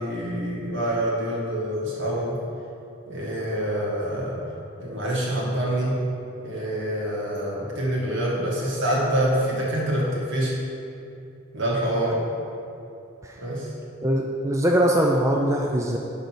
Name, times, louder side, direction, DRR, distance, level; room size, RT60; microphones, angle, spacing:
voice 1, 0.0-2.4 3.1-4.4 4.8-6.0 6.4-10.6 11.5-12.2 13.4-13.7, right 1 dB, 60° right, -4 dB, 2.0 m, -26 dB
voice 2, 14.0-16.0, right 1 dB, 15° right, 0 dB, 0.4 m, -22 dB
10.5 x 3.9 x 6.2 m, 2.7 s
head